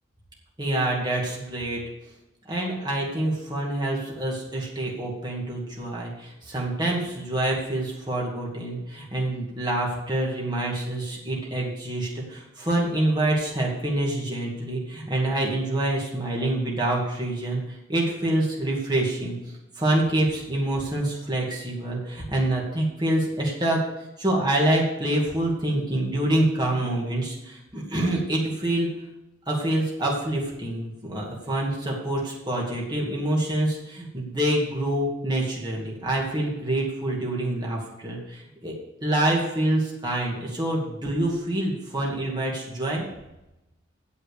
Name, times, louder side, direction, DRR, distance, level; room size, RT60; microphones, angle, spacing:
voice 1, 0.6-1.8 2.5-17.6 17.9-23.8 24.2-28.9 29.5-38.7 39.0-43.0, right 1 dB, 20° right, -3 dB, 2.3 m, -26 dB
8.6 x 7.6 x 6.6 m, 0.93 s
head